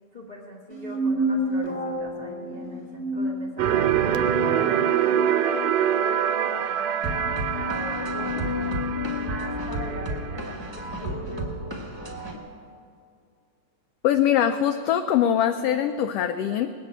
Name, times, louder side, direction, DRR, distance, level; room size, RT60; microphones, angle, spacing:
voice 1, 0.1-11.5, equal, 70° left, -3 dB, 0.4 m, -41 dB
sound 1, 0.7-4.1, right 1 dB, 5° left, 1.1 m, -29 dB
sound 2, 3.6-10.6, right 9 dB, 80° right, 1.7 m, -25 dB
sound 3, 7.0-12.4, left 1 dB, 25° right, 0.6 m, -31 dB
voice 2, 14.0-16.7, left 10 dB, 90° left, 8 dB, 1.3 m, -22 dB
19.5 x 7.0 x 8.8 m, 2.3 s
omnidirectional pair, 3.4 m